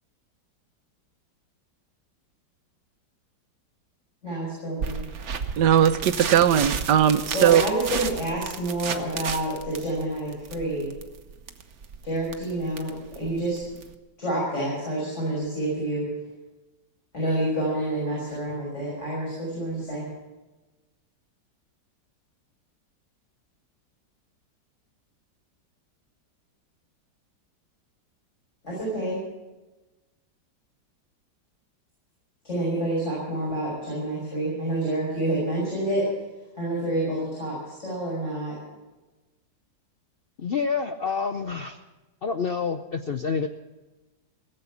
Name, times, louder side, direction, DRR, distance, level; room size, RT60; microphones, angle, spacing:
voice 1, 4.2-5.0 7.3-10.9 12.0-13.6 14.2-16.1 17.1-20.1 28.6-29.2 32.4-36.1 36.6-38.5, right 1 dB, 40° left, -6 dB, 6.2 m, -28 dB
sound 1, 4.8-13.9, right 6 dB, 50° right, 1.1 m, -33 dB
voice 2, 5.6-7.6, right 9 dB, 75° right, 12 dB, 1.3 m, -19 dB
voice 3, 40.4-41.8 42.2-43.5, left 5 dB, 85° left, 7 dB, 0.5 m, -28 dB
17.5 x 7.9 x 9.6 m, 1.1 s
omnidirectional pair, 1.9 m